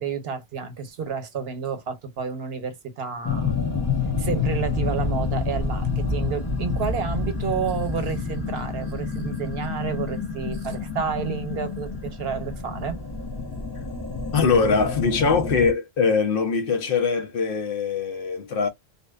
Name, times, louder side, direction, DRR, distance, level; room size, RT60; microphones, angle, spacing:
voice 1, 0.0-3.5 4.2-13.0, right 6 dB, 75° right, 1.0 m, -30 dB
sound 1, 3.2-15.7, left 4 dB, 30° left, 0.5 m, -28 dB
voice 2, 14.3-18.7, left 5 dB, 65° left, 0.8 m, -22 dB
2.6 x 2.1 x 2.3 m
omnidirectional pair, 1.0 m